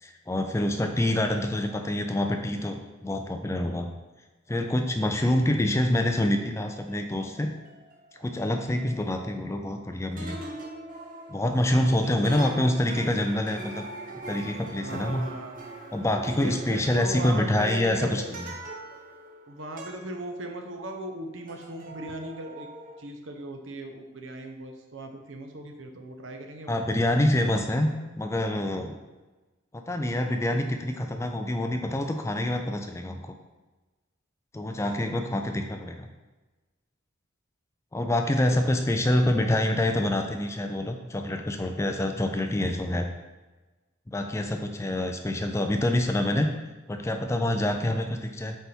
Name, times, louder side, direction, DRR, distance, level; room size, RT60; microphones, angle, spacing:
voice 1, 0.0-3.9 4.5-7.5 8.2-10.4 11.3-13.8 14.3-15.3 15.9-18.5 26.7-28.9 29.9-33.3 34.5-36.1 37.9-43.1 44.1-46.5 46.9-48.6, left 1 dB, 15° left, 5 dB, 0.4 m, -26 dB
sound 1, 6.3-9.8 10.2-21.2 21.5-23.0, right 2 dB, 40° right, 0.9 m, -43 dB
voice 2, 14.8-15.5 16.4-18.3 19.5-22.7 23.0-26.9 28.8-28.9 34.7-35.1 38.3-38.8, right 2 dB, 70° right, 4 dB, 0.8 m, -38 dB
7.9 x 3.4 x 4.4 m, 1.2 s
head